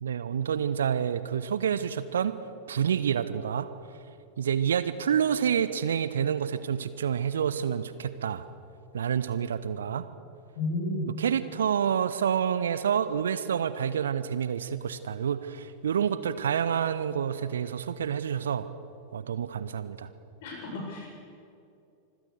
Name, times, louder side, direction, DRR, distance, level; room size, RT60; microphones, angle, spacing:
voice 1, 0.0-2.3 2.7-3.7 4.4-8.4 8.9-10.0 11.2-18.7 19.1-20.1, right 8 dB, 65° right, 14 dB, 1.0 m, -28 dB
voice 2, 10.6-11.1 20.4-21.1, left 2 dB, 50° left, 0 dB, 7.4 m, -32 dB
25.5 x 16.0 x 6.7 m, 2.5 s
figure-of-eight pair, 90°, 0 cm